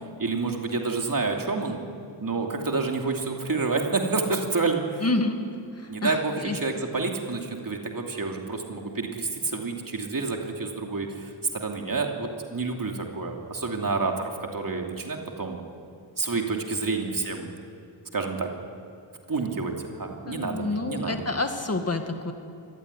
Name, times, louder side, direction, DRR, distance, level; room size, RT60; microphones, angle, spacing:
voice 1, 0.2-1.8 2.2-5.0 5.9-15.6 16.2-17.5 18.1-18.5 19.3-21.2, right 3 dB, 45° right, 2 dB, 2.9 m, -29 dB
voice 2, 5.0-5.4 5.7-6.6 20.2-22.3, left 2 dB, 30° left, 5 dB, 2.0 m, -28 dB
26.0 x 20.0 x 9.8 m, 2.5 s
wide cardioid pair, 120°, 46 cm